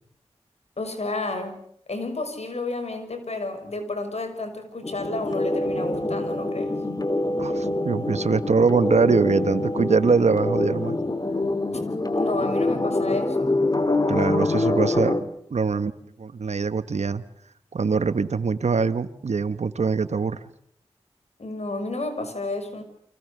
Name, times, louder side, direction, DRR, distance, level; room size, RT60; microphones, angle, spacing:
voice 1, 0.8-1.6 1.9-6.7 12.1-13.5 21.4-22.8, left 2 dB, 70° left, 7 dB, 6.2 m, -31 dB
sound 1, 4.8-15.2, left 2 dB, 35° left, 2.7 m, -25 dB
voice 2, 7.4-11.0 14.1-15.9 16.2-17.2 17.7-20.4, right 5 dB, 85° right, 13 dB, 1.3 m, -23 dB
30.0 x 24.5 x 6.8 m, 0.66 s
cardioid pair, 40°, 11 cm